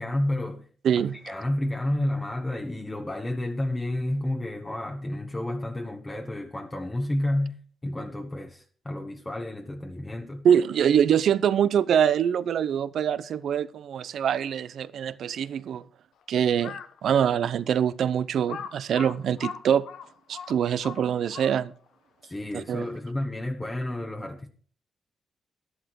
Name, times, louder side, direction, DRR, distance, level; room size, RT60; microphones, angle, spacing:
voice 1, 0.0-0.7 0.9-10.5 22.2-24.5, left 1 dB, 20° left, 1.3 m, -31 dB
voice 2, 10.4-15.8 16.3-19.8 20.3-21.7 22.7-22.8, right 8 dB, 70° right, 0.7 m, -24 dB
Crow, 16.5-17.0 17.6-17.7 18.5-21.9, left 7 dB, 80° left, 1.1 m, -40 dB
11.5 x 11.5 x 4.7 m
cardioid pair, 85°, 0 cm